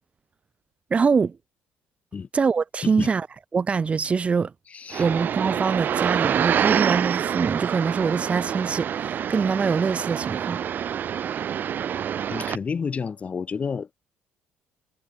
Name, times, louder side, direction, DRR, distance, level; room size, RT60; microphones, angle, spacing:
voice 1, 0.9-1.4 2.3-3.3 3.5-4.5 5.0-10.6, right 5 dB, 30° right, 2.0 m, -24 dB
voice 2, 4.7-5.1 12.3-14.1, left 5 dB, 30° left, 6.9 m, -30 dB
sound 1, 4.9-12.6, right 9 dB, 45° right, 2.1 m, -26 dB
cardioid pair, 125°, 4 cm